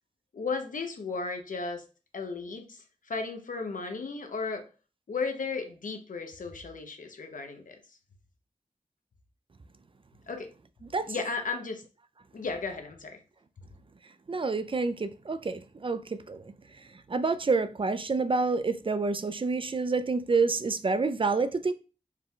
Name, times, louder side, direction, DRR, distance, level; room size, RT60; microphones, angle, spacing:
voice 1, 0.3-1.8 2.1-4.7 5.1-7.8 10.3-10.5 11.1-11.8 12.3-13.2, left 4 dB, 85° left, 0.7 m, -35 dB
voice 2, 14.3-16.4 17.1-21.7, right 4 dB, 40° right, 0.4 m, -28 dB
4.6 x 2.2 x 3.6 m
wide cardioid pair, 55°, 13 cm